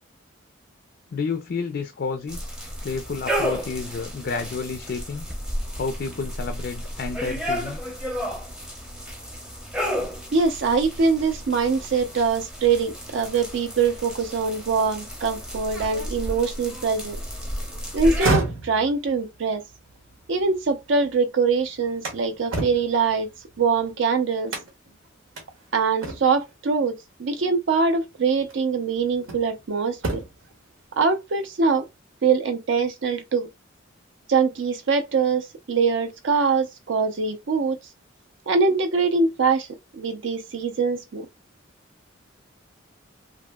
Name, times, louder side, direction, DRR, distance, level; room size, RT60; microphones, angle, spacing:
voice 1, 1.1-2.4 2.8-5.3 5.7-7.8, left 4 dB, 50° left, 0.3 m, -30 dB
sound 1, 2.3-18.3, equal, 5° right, 0.6 m, -32 dB
voice 2, 10.3-17.2 17.9-19.6 20.3-23.3 23.6-24.5 25.7-30.2 31.0-31.8 32.2-33.5 34.3-37.8 38.5-39.7 39.9-41.3, right 5 dB, 65° right, 0.5 m, -23 dB
sound 2, 18.0-21.1 21.5-23.9 24.5-24.9 25.4-25.5 26.0-26.5 27.7-27.9 28.5-29.6 29.9-30.5, right 3 dB, 85° right, 0.9 m, -30 dB
2.9 x 2.5 x 2.2 m
head